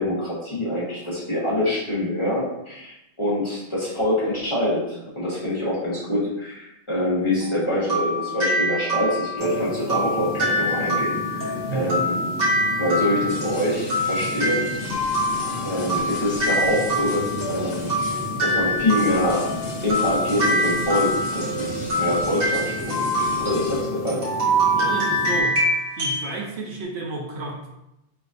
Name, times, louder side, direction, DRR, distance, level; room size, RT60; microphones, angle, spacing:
voice 1, 0.0-12.2 12.8-14.7 15.6-17.9 18.4-19.5 19.8-24.2, left 1 dB, 30° left, -8 dB, 1.1 m, -25 dB
sound 1, 7.4-26.3, equal, 60° right, 1.6 m, -25 dB
sound 2, 9.4-25.4, left 2 dB, 55° left, 1.1 m, -34 dB
voice 2, 11.7-12.0 24.8-25.7 26.0-27.7, right 3 dB, 75° right, -1 dB, 1.0 m, -31 dB
sound 3, 13.3-23.8, left 2 dB, 85° left, 1.0 m, -38 dB
3.9 x 3.3 x 2.5 m, 0.87 s
omnidirectional pair, 1.1 m